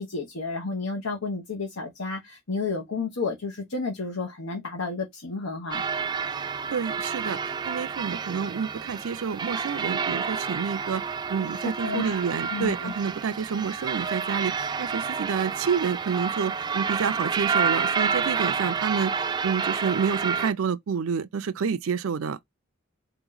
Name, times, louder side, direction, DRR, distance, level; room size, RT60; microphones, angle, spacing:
voice 1, 0.0-5.8 11.5-12.2 12.5-12.9, left 4 dB, 85° left, 1.1 m, -31 dB
sound 1, 5.7-20.5, right 6 dB, 20° right, 0.3 m, -29 dB
voice 2, 6.7-11.0 11.3-22.4, right 6 dB, 85° right, 0.4 m, -29 dB
4.4 x 3.0 x 3.9 m
head